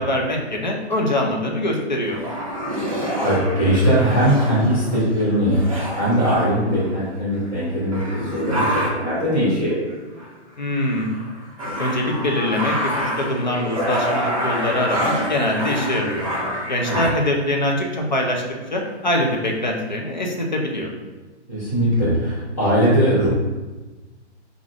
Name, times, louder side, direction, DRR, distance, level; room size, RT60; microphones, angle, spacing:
voice 1, 0.0-2.2 10.6-11.1 11.8-12.7 13.2-16.3 16.7-18.4 18.7-20.9, left 1 dB, 40° left, 0 dB, 0.4 m, -23 dB
sound 1, 2.0-7.1 7.6-7.7 7.9-9.2 9.9-10.3 10.6-17.4 18.2-18.3 18.6-19.4, equal, 30° right, 0.5 m, -27 dB
voice 2, 3.2-5.6 5.9-9.8 16.8-17.0 21.5-23.3, equal, 20° left, -17 dB, 0.9 m, -20 dB
3.3 x 2.5 x 3.6 m, 1.2 s
hypercardioid pair, 180°, 35 cm